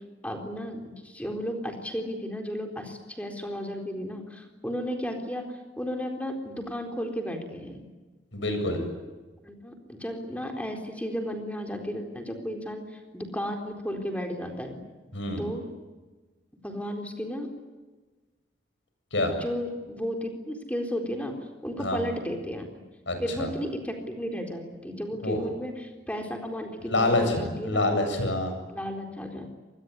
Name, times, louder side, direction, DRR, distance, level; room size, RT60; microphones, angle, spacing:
voice 1, 0.2-7.8 9.4-14.8 15.4-15.7 16.6-17.5 19.3-21.4 21.6-22.7 23.2-28.0 28.7-29.5, equal, 5° left, 3 dB, 4.0 m, -34 dB
voice 2, 8.3-8.8 15.1-15.4 19.1-19.3 21.8-22.0 23.1-23.5 25.2-25.4 26.9-28.5, left 2 dB, 85° left, 6 dB, 7.6 m, -26 dB
26.0 x 21.0 x 9.7 m, 1.3 s
head